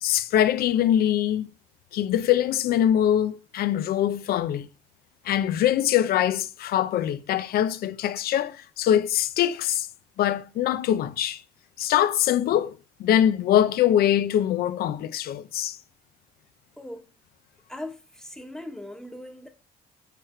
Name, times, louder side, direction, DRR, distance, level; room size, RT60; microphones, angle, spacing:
voice 1, 0.0-1.5 1.9-4.7 5.2-9.9 10.2-11.4 11.8-15.8, left 11 dB, 65° left, 0.7 m, -23 dB
voice 2, 16.8-17.1 17.7-19.5, left 1 dB, 5° left, 1.2 m, -39 dB
6.8 x 4.7 x 4.4 m
cardioid pair, 110°, 17 cm